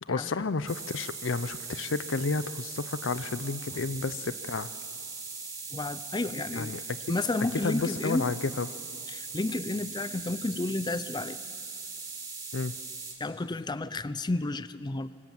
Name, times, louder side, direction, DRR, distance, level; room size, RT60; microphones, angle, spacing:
voice 1, 0.0-4.7 6.5-7.2 7.5-8.7 12.5-12.8, left 4 dB, 75° left, 15 dB, 0.7 m, -31 dB
sound 1, 0.7-13.1, right 4 dB, 20° right, 2.8 m, -40 dB
voice 2, 5.7-6.8 7.1-8.3 9.1-11.4 13.2-15.1, left 2 dB, 20° left, 15 dB, 0.5 m, -31 dB
25.0 x 17.5 x 7.8 m, 2.3 s
head